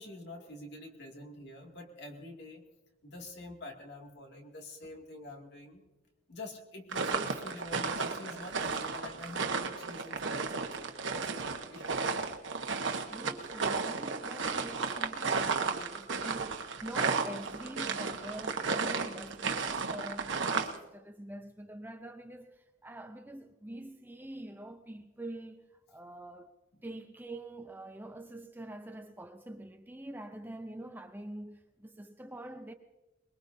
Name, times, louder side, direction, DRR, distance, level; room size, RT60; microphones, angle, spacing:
voice 1, 0.0-2.6 3.0-5.8 6.3-11.9, left 2 dB, 55° left, 2.4 m, -46 dB
sound 1, 6.9-20.8, right 4 dB, 65° right, 1.2 m, -33 dB
voice 2, 12.8-26.5 26.8-32.7, right 1 dB, 10° right, 0.6 m, -45 dB
22.5 x 21.5 x 2.7 m
head